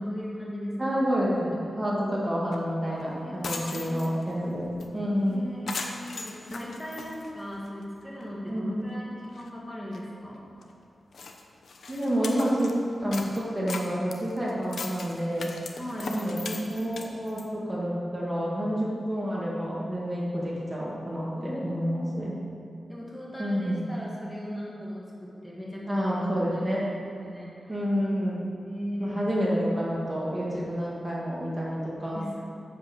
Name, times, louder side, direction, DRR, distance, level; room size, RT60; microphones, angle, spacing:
voice 1, 0.0-0.8 3.2-4.0 5.2-10.4 15.8-16.2 21.3-22.4 22.9-26.9 27.2-27.8 28.6-29.3 32.0-32.5, equal, 15° left, -5 dB, 2.3 m, -38 dB
voice 2, 0.8-5.4 8.5-8.7 11.9-12.7 13.0-15.5 16.0-22.3 23.4-23.9 25.9-26.9 27.7-28.5 29.0-32.2, equal, 20° right, -6 dB, 2.2 m, -29 dB
sound 1, 2.5-2.6 3.0-3.1 3.3-4.3 4.8-4.9 5.2-5.3 5.7-7.8 8.2-8.3 8.9-9.0 9.2-9.5 9.9-10.0 10.6-10.7 11.1-12.8 13.1-17.5, left 4 dB, 70° left, 0.9 m, -39 dB
8.4 x 7.7 x 7.3 m, 2.6 s
wide cardioid pair, 115°, 0 cm